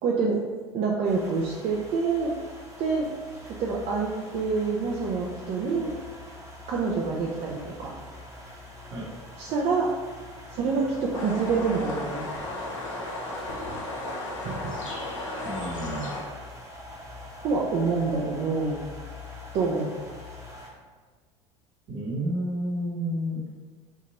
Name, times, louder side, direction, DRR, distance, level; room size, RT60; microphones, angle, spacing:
voice 1, 0.0-0.4 0.7-2.4 2.8-3.1 3.5-5.9 6.7-7.9 9.4-9.9 10.5-12.2 14.4-14.7 17.4-18.8 19.5-19.9, right 4 dB, 45° right, -2 dB, 0.4 m, -27 dB
ambiente day rain loud vehicle, 1.0-20.7, left 2 dB, 20° right, 0.8 m, -44 dB
sound 1, 11.1-16.2, left 2 dB, 80° left, 0.7 m, -34 dB
voice 2, 15.4-16.1 21.9-23.5, equal, 60° right, -4 dB, 1.0 m, -30 dB
2.7 x 2.3 x 2.9 m, 1.5 s
hypercardioid pair, 75°, 16 cm